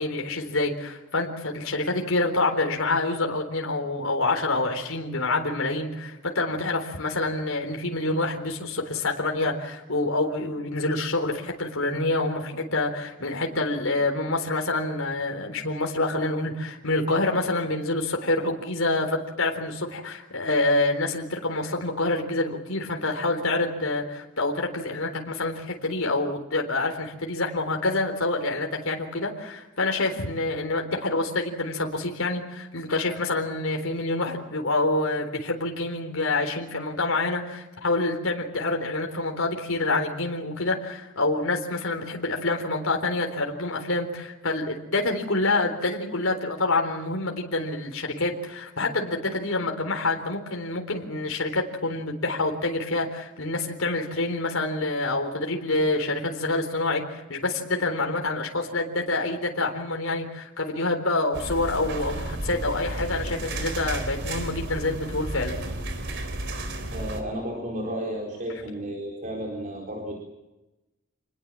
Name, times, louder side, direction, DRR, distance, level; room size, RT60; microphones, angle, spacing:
voice 1, 0.0-65.6, left 2 dB, 70° left, 2 dB, 3.9 m, -27 dB
sound 1, 61.3-67.2, right 1 dB, 60° right, 4.0 m, -33 dB
voice 2, 66.9-70.2, right 1 dB, 40° right, 0 dB, 4.4 m, -33 dB
27.5 x 21.0 x 7.6 m, 0.99 s
head